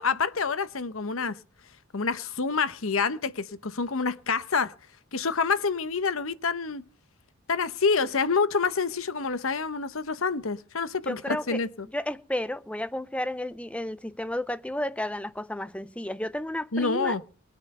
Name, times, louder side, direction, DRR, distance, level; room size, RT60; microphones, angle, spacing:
voice 1, 0.0-1.4 1.9-4.7 5.1-6.8 7.5-11.9 16.7-17.2, left 4 dB, 70° left, 0.9 m, -27 dB
voice 2, 11.1-11.6 11.9-17.2, left 1 dB, 5° left, 0.6 m, -32 dB
21.5 x 9.1 x 5.5 m
head